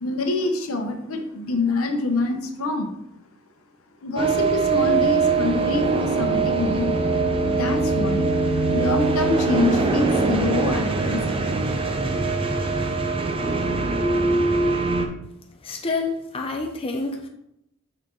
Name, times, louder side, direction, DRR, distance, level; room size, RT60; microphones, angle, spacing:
voice 1, 0.0-3.0 4.0-7.0 7.4-8.3 8.7-11.6, left 2 dB, 85° left, 5 dB, 0.9 m, -26 dB
sound 1, 4.2-15.1, right 3 dB, 25° right, 0.6 m, -22 dB
voice 2, 15.6-17.3, left 3 dB, 25° left, 3 dB, 0.6 m, -28 dB
6.1 x 4.4 x 3.8 m, 0.80 s
head